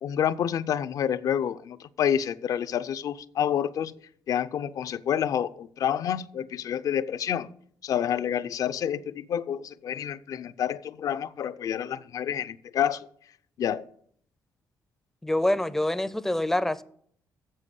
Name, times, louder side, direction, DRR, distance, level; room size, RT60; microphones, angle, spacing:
voice 1, 0.0-3.9 4.3-7.5 7.8-13.1 13.6-13.9, left 9 dB, 60° left, 0.6 m, -28 dB
voice 2, 15.2-16.8, left 1 dB, 5° left, 0.5 m, -26 dB
7.6 x 7.6 x 8.3 m
cardioid pair, 115°, 7 cm